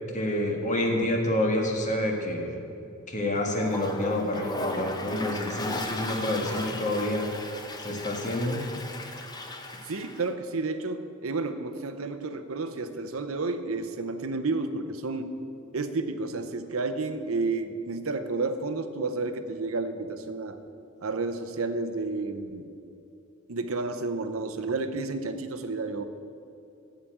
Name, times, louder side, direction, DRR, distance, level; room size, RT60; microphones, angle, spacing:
voice 1, 0.1-2.6 3.1-7.3 7.8-8.6, left 1 dB, 35° left, 1 dB, 1.7 m, -28 dB
Toilet flush, 3.5-10.3, left 1 dB, 20° left, 0.9 m, -36 dB
voice 2, 9.9-15.4 15.7-20.6 21.0-22.7 23.5-26.0, right 3 dB, 85° right, 9 dB, 0.8 m, -31 dB
15.0 x 5.1 x 8.8 m, 2.6 s
head